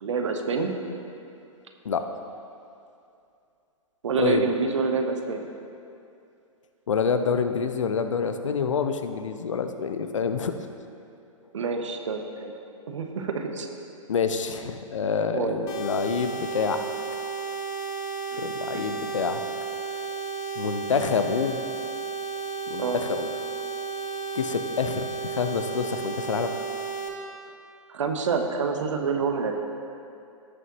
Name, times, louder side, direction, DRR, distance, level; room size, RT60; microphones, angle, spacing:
voice 1, 0.0-0.7 4.0-5.5 11.5-12.5 12.9-13.7 15.3-15.6 18.3-18.5 22.8-23.0 27.9-29.5, right 5 dB, 65° right, 4 dB, 1.1 m, -27 dB
voice 2, 6.9-10.5 14.1-16.8 18.4-19.4 19.9-20.0 20.6-21.6 22.7-23.3 24.3-26.5, left 6 dB, 65° left, 8 dB, 0.7 m, -27 dB
sound 1, 15.7-27.1, right 5 dB, 35° left, 1.4 m, -33 dB
16.5 x 6.7 x 3.0 m, 2.6 s
figure-of-eight pair, 110°, 17 cm